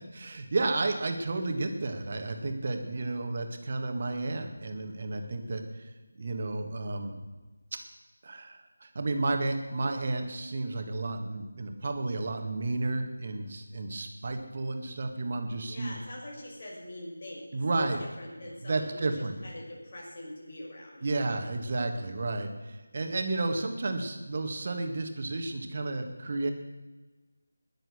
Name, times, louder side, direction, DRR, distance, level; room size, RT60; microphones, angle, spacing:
voice 1, 0.1-5.9 6.2-7.1 8.2-16.0 17.5-18.0 18.6-19.4 21.0-26.5, right 2 dB, 45° right, 5 dB, 2.0 m, -32 dB
voice 2, 15.7-21.4, left 1 dB, 45° left, -3 dB, 6.4 m, -44 dB
21.0 x 7.7 x 6.5 m, 1.2 s
figure-of-eight pair, 165°, 0 cm